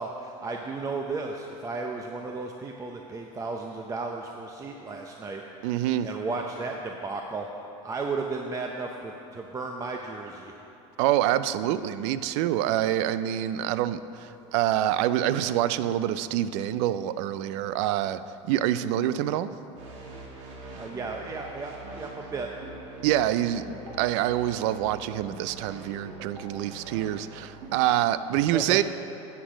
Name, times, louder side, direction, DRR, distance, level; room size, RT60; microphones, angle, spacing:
voice 1, 0.0-5.4 6.0-7.5 7.8-10.5 20.7-22.5 28.5-28.8, right 3 dB, 20° right, 2 dB, 0.6 m, -34 dB
voice 2, 5.6-6.1 11.0-19.5 23.0-28.8, right 12 dB, 70° right, 14 dB, 0.4 m, -26 dB
sound 1, 19.8-27.7, right 2 dB, 90° right, 1.8 m, -43 dB
10.0 x 8.3 x 4.9 m, 2.9 s
supercardioid pair, 120°, 16 cm